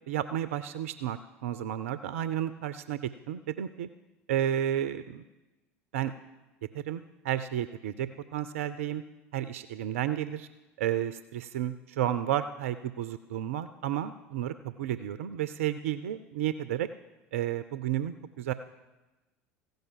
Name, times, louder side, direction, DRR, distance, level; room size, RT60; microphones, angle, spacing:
voice 1, 0.1-3.0 3.3-3.9 4.3-5.2 5.9-6.1 6.7-9.0 9.3-10.5 10.8-16.9 17.3-18.5, right 11 dB, 65° right, 12 dB, 0.4 m, -32 dB
15.5 x 5.4 x 7.4 m, 1.1 s
figure-of-eight pair, 70°, 8 cm